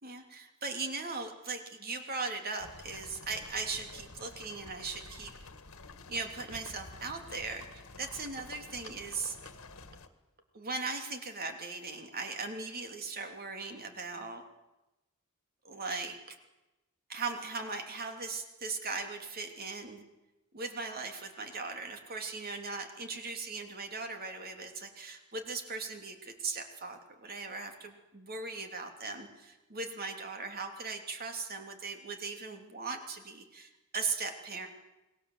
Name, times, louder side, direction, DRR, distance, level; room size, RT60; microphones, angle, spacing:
voice 1, 0.0-5.3 6.1-9.4 10.5-14.4 15.6-16.4 17.1-20.0 20.5-34.7, right 4 dB, 45° right, 5 dB, 3.1 m, -39 dB
sound 1, 2.6-10.1, left 3 dB, 70° left, 1.9 m, -50 dB
28.5 x 20.5 x 8.0 m, 1.0 s
head